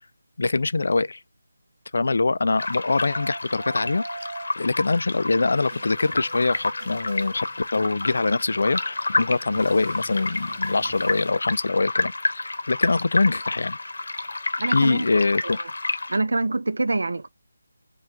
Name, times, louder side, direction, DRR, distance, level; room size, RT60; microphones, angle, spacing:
voice 1, 0.4-1.2 1.9-4.3 4.6-7.5 7.7-13.8 14.7-15.6, left 3 dB, 50° left, 0.3 m, -23 dB
sound 1, 2.5-4.6, right 2 dB, 45° right, 1.3 m, -38 dB
sound 2, 2.6-16.2, left 2 dB, 70° left, 0.8 m, -30 dB
sound 3, 5.5-8.0 8.7-11.3, right 1 dB, 10° right, 1.1 m, -46 dB
voice 2, 14.6-15.6 16.1-17.3, right 2 dB, 65° right, 0.4 m, -26 dB
4.5 x 2.3 x 3.7 m
figure-of-eight pair, 180°, 0 cm